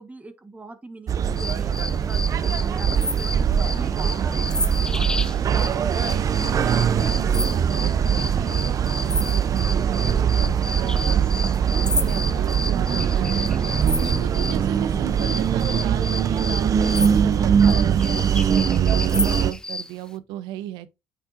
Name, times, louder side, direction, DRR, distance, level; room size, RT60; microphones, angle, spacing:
voice 1, 0.0-5.1 10.0-10.3, right 2 dB, 20° right, 1.3 m, -41 dB
sound 1, 1.1-19.5, right 8 dB, 45° right, 0.6 m, -22 dB
sound 2, 1.4-14.6 15.2-19.9, left 2 dB, 10° left, 0.5 m, -32 dB
voice 2, 5.8-11.3 12.0-13.5 13.8-20.9, right 12 dB, 90° right, 0.6 m, -35 dB
8.7 x 5.2 x 2.5 m
cardioid pair, 85°, 8 cm